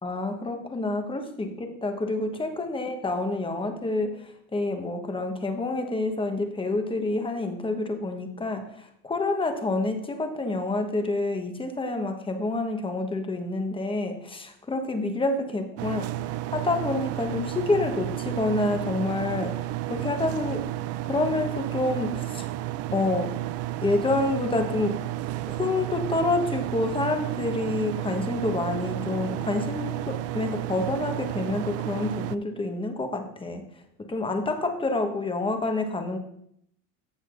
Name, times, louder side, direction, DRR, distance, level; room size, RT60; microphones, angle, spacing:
voice 1, 0.0-16.1 16.5-20.7 21.0-22.5 22.9-23.3 23.8-25.0 25.5-33.6 34.0-36.2, left 2 dB, 15° left, 5 dB, 1.2 m, -28 dB
sound 1, 15.8-32.4, right 14 dB, 45° right, 0.4 m, -32 dB
14.5 x 6.3 x 2.6 m, 0.70 s
supercardioid pair, 115°, 36 cm